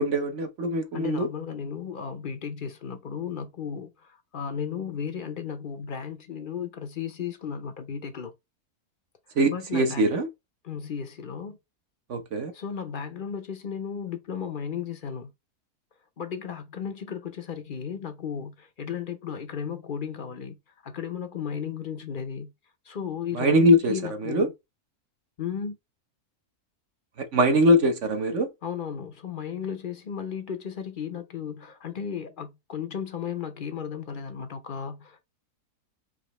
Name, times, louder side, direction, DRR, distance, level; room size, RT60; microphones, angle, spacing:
voice 1, 0.0-1.3 9.3-10.3 12.1-12.5 23.3-24.5 27.2-28.5, equal, 55° right, 1.2 m, -22 dB
voice 2, 0.9-8.3 9.5-10.0 10.6-11.6 12.5-15.3 16.2-20.6 20.8-22.5 22.9-24.5 25.4-25.8 28.6-35.2, left 7 dB, 45° left, 0.7 m, -35 dB
5.1 x 2.9 x 3.0 m
omnidirectional pair, 1.6 m